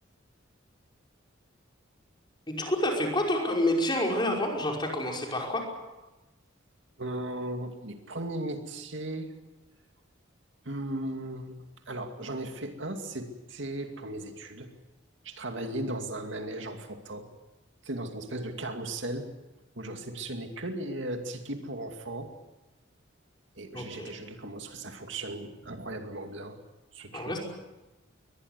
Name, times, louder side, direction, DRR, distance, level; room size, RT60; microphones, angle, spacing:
voice 1, 2.5-5.7 23.7-24.1 27.1-27.4, left 1 dB, 25° left, 0 dB, 5.4 m, -28 dB
voice 2, 7.0-9.3 10.6-11.6 11.9-14.7 15.2-17.3 17.8-19.3 19.8-22.3 23.6-26.6 26.9-27.4, right 1 dB, 65° right, 5 dB, 2.5 m, -36 dB
23.0 x 20.5 x 8.3 m, 1.1 s
head